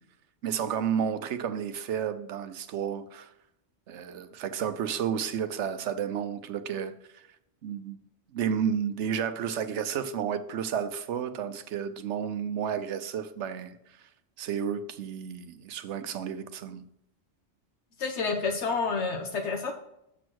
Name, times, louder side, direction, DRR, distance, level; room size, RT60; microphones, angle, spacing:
voice 1, 0.4-3.3 3.9-7.2 7.6-8.0 8.3-14.1 14.4-16.8, right 8 dB, 85° right, 1.0 m, -32 dB
voice 2, 18.0-19.7, left 4 dB, 80° left, 1.2 m, -29 dB
7.0 x 6.2 x 4.6 m
omnidirectional pair, 1.2 m